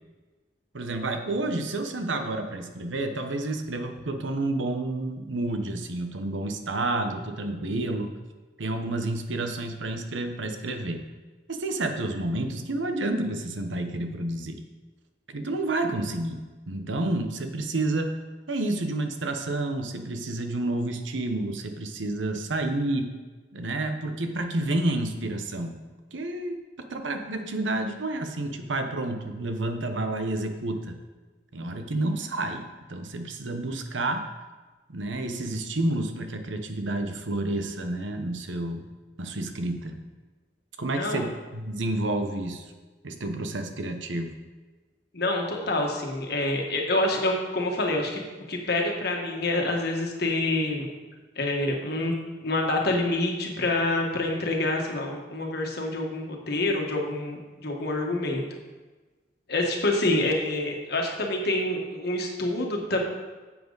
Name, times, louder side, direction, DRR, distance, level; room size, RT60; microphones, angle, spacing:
voice 1, 0.7-8.1 8.6-11.0 11.5-14.6 15.3-16.4 16.7-18.1 18.5-23.1 23.5-25.8 26.1-26.6 26.9-31.0 31.5-34.3 34.9-38.8 39.2-40.0 40.8-42.6 43.0-44.3, right 2 dB, 85° right, 6 dB, 1.0 m, -30 dB
voice 2, 40.9-41.3 45.1-48.2 48.5-50.9 51.3-52.1 52.4-58.4 59.5-63.0, left 2 dB, 55° left, 1 dB, 1.5 m, -27 dB
10.5 x 7.7 x 4.0 m, 1.3 s
head